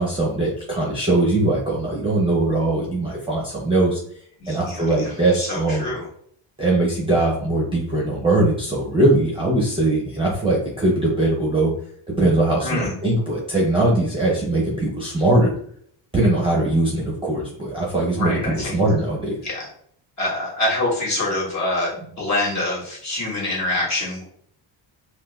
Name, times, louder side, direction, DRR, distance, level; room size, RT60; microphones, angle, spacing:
voice 1, 0.0-4.0 4.5-5.9 6.6-11.7 12.2-15.5 16.1-19.5, right 2 dB, 10° right, -4 dB, 0.7 m, -21 dB
voice 2, 4.4-6.1 12.6-12.9 17.9-18.8 19.4-19.7 20.2-24.2, left 2 dB, 35° left, -5 dB, 1.4 m, -26 dB
4.9 x 2.0 x 2.3 m, 0.64 s
cardioid pair, 115°, 49 cm